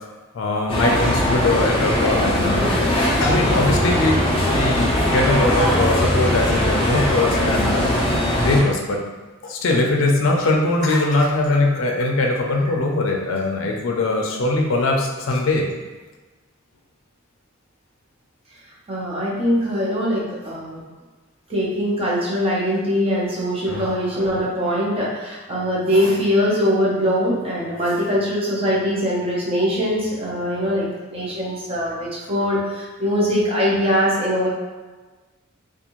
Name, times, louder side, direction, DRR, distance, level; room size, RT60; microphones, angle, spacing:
voice 1, 0.3-2.8 3.2-7.8 8.4-9.0 9.4-15.7 23.7-23.9 31.8-31.9, left 2 dB, 70° left, 1 dB, 0.4 m, -21 dB
sound 1, 0.7-8.6, left 1 dB, 25° left, 0.6 m, -20 dB
voice 2, 18.9-20.8 21.5-34.5, equal, 30° right, -6 dB, 0.7 m, -22 dB
2.6 x 2.3 x 2.9 m, 1.3 s
head